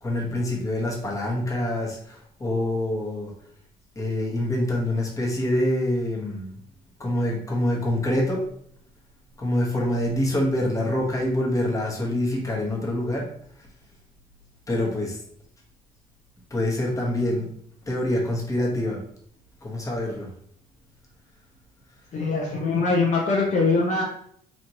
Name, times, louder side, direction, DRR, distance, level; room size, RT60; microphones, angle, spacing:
voice 1, 0.0-3.3 3.9-6.5 7.0-8.4 9.4-13.3 14.7-15.2 16.5-17.5 17.9-19.0 19.6-20.3, left 1 dB, 20° left, -2 dB, 1.2 m, -25 dB
voice 2, 22.1-24.0, left 3 dB, 45° left, -2 dB, 0.8 m, -22 dB
4.2 x 2.9 x 2.9 m, 0.65 s
cardioid pair, 110°, 17 cm